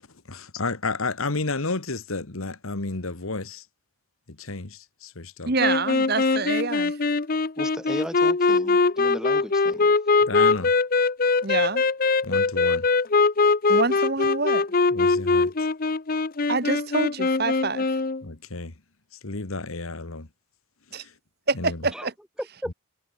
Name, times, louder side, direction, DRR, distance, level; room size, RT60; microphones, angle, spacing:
voice 1, 0.3-3.7 4.3-5.5 10.2-10.7 12.2-12.9 14.9-15.5 18.2-18.7 19.2-20.3 20.9-21.1 21.5-21.9 22.7-22.8, left 3 dB, 80° left, 1.7 m, -31 dB
voice 2, 5.4-7.0 11.4-11.8 13.7-14.6 16.5-17.8 20.9-21.0 21.5-22.1, right 3 dB, 50° right, 1.6 m, -26 dB
sound 1, 5.6-18.2, left 4 dB, 40° left, 0.7 m, -22 dB
voice 3, 7.6-9.9 21.9-22.1 22.4-22.7, equal, 5° right, 1.1 m, -35 dB
head